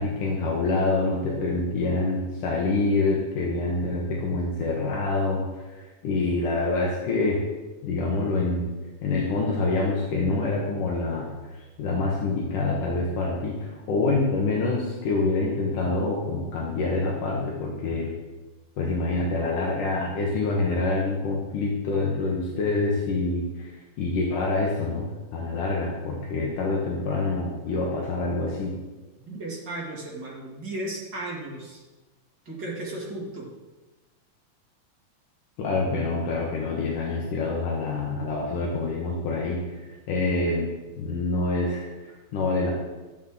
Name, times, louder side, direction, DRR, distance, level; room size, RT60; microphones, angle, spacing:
voice 1, 0.0-5.4 5.7-7.4 7.8-8.7 9.0-18.1 18.8-28.7 35.6-40.7 41.0-42.7, left 3 dB, 75° left, -2 dB, 2.8 m, -26 dB
voice 2, 29.2-31.8 32.4-33.5, right 1 dB, 35° right, -4 dB, 2.8 m, -35 dB
12.5 x 10.0 x 3.9 m, 1.2 s
omnidirectional pair, 3.8 m